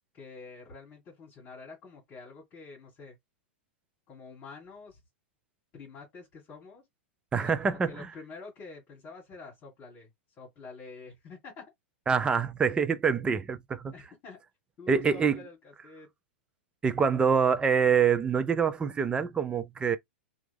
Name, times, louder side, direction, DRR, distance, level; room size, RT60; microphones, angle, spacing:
voice 1, 0.1-3.2 4.1-5.0 5.7-6.9 7.4-11.6 12.2-12.4 13.9-14.4 14.8-16.1, left 4 dB, 35° left, 1.9 m, -47 dB
voice 2, 7.3-7.9 12.1-13.9 14.9-15.4 16.8-20.0, right 6 dB, 15° right, 0.5 m, -25 dB
3.0 x 2.5 x 3.4 m
hypercardioid pair, 110°, 6 cm